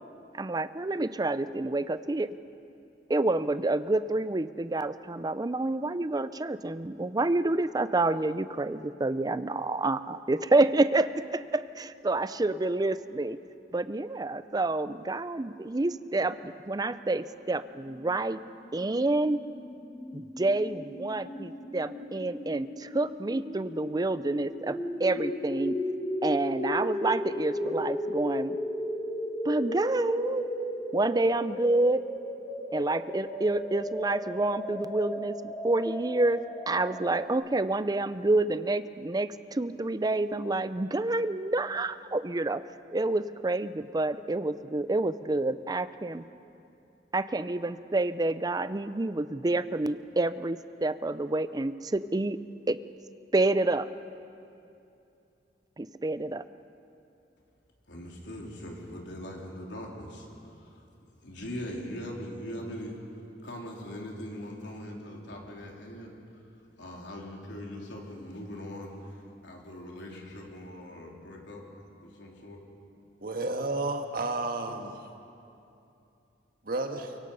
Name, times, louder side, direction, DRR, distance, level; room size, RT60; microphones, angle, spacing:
voice 1, 0.3-2.3 3.1-13.4 13.7-18.4 18.7-19.4 20.1-25.8 26.2-28.6 29.4-30.4 30.9-32.0 32.7-42.6 42.9-46.2 47.1-52.4 52.7-52.8 53.3-53.9 55.8-56.4, right 2 dB, 20° right, 14 dB, 0.5 m, -28 dB
sound 1, 18.4-37.3, left 1 dB, 10° left, 1.9 m, -36 dB
voice 2, 57.9-60.8 61.2-63.0 63.4-66.2 66.8-71.6 72.0-72.6, equal, 90° left, -1 dB, 3.6 m, -41 dB
voice 3, 73.2-75.1 76.6-77.2, right 2 dB, 55° right, 4 dB, 1.7 m, -32 dB
24.0 x 23.0 x 5.6 m, 2.7 s
head